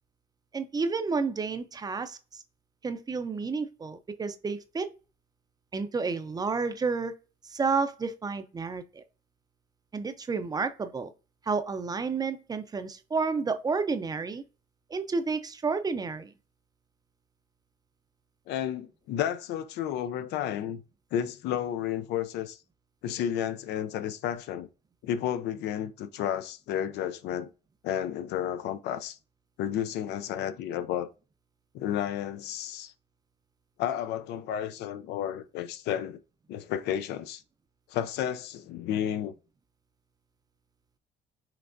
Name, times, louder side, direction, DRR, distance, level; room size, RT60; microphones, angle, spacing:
voice 1, 0.5-2.4 2.8-4.9 5.7-7.1 7.4-9.0 9.9-11.1 11.5-14.4 14.9-16.3, right 4 dB, 25° right, 0.5 m, -30 dB
voice 2, 18.5-20.8 21.1-22.6 23.0-24.7 25.0-27.5 27.8-29.2 29.6-31.1 31.7-32.9 33.8-36.2 36.5-37.4 37.9-39.3, left 10 dB, 80° left, 0.5 m, -32 dB
5.8 x 3.3 x 2.6 m
cardioid pair, 110°, 17 cm